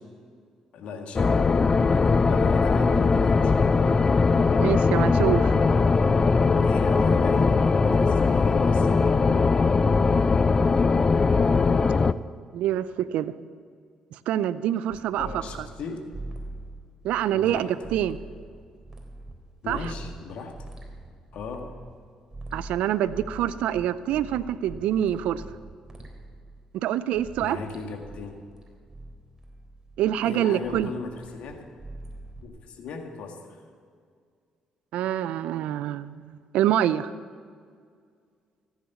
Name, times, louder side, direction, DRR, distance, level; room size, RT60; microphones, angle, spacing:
voice 1, 0.7-1.5 1.7-4.1 6.6-9.1 15.2-16.0 17.3-17.9 19.6-20.6 21.3-21.7 27.4-28.4 30.2-31.7 32.4-33.6, left 4 dB, 65° left, 4 dB, 1.9 m, -38 dB
sound 1, 1.2-12.1, left 4 dB, 35° left, 0.5 m, -20 dB
voice 2, 4.6-5.6 12.5-13.3 14.3-15.3 15.6-15.7 17.0-18.2 19.7-19.9 22.5-25.4 26.7-27.6 30.0-30.9 34.9-37.1, right 11 dB, 75° right, 16 dB, 0.5 m, -26 dB
sound 2, 14.9-15.8 16.1-19.3 19.7-21.9 22.3-26.7 27.1-30.2 30.6-32.5, right 2 dB, 25° right, 3.8 m, -42 dB
14.5 x 9.9 x 7.1 m, 2.1 s
hypercardioid pair, 50°, 2 cm